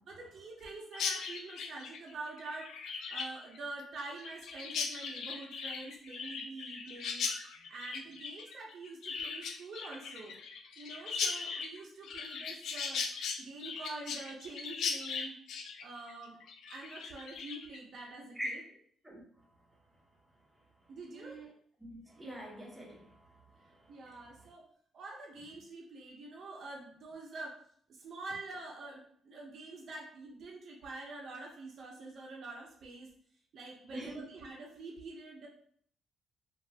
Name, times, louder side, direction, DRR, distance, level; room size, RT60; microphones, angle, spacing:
voice 1, 0.1-10.4 10.8-13.0 13.4-15.3 15.8-16.4 16.7-18.6 20.9-21.4 23.9-24.7 24.9-27.6 27.9-33.1 33.5-35.5, right 2 dB, 60° right, -1 dB, 0.6 m, -46 dB
Chirp tweet, 0.9-17.8, left 5 dB, 75° left, 0.3 m, -39 dB
voice 2, 21.1-21.5 21.8-23.2 23.8-23.9 33.9-34.2, right 1 dB, 5° right, -3 dB, 0.9 m, -43 dB
3.0 x 2.3 x 2.7 m, 0.62 s
cardioid pair, 90°, 0 cm